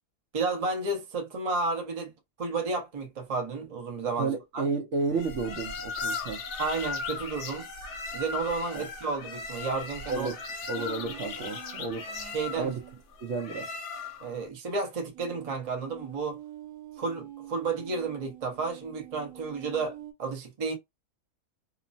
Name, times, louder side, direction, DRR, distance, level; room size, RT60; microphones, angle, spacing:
voice 1, 0.3-2.1 2.4-4.7 6.6-7.7 8.1-10.3 12.3-12.7 14.2-16.4 17.0-20.7, right 4 dB, 30° right, 0.7 m, -32 dB
voice 2, 4.2-6.4 8.7-8.9 10.1-10.4 10.7-12.2 12.5-12.8 13.2-13.8, right 4 dB, 60° right, 0.9 m, -32 dB
sound 1, 5.1-14.4, left 4 dB, 60° left, 0.8 m, -37 dB
sound 2, 10.8-13.0 15.1-20.1, right 12 dB, 90° right, 1.3 m, -46 dB
2.9 x 2.1 x 2.6 m
omnidirectional pair, 1.7 m